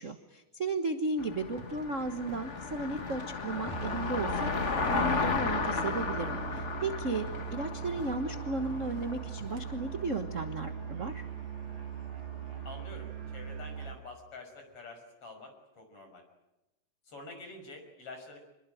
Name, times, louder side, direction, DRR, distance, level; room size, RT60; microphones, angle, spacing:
voice 1, 0.0-11.2, right 3 dB, 45° right, 7 dB, 1.0 m, -35 dB
Car passing by, 1.2-13.5, left 4 dB, 35° left, 1.4 m, -35 dB
sound 1, 1.2-1.9 2.2-3.3 3.7-6.2 6.6-6.8 7.1-9.9, right 3 dB, 65° right, 3.7 m, -54 dB
Musical instrument, 3.7-14.0, right 7 dB, 85° right, 3.3 m, -40 dB
voice 2, 12.6-16.2 17.1-18.4, left 2 dB, 50° left, 5 dB, 6.8 m, -47 dB
26.5 x 22.0 x 9.3 m, 0.97 s
omnidirectional pair, 3.4 m